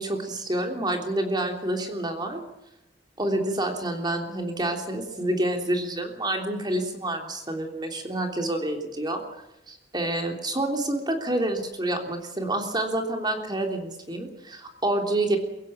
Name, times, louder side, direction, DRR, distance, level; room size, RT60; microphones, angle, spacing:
voice 1, 0.0-2.4 3.2-9.2 9.7-15.4, right 1 dB, 25° right, 4 dB, 3.3 m, -28 dB
23.5 x 16.0 x 8.9 m, 0.89 s
head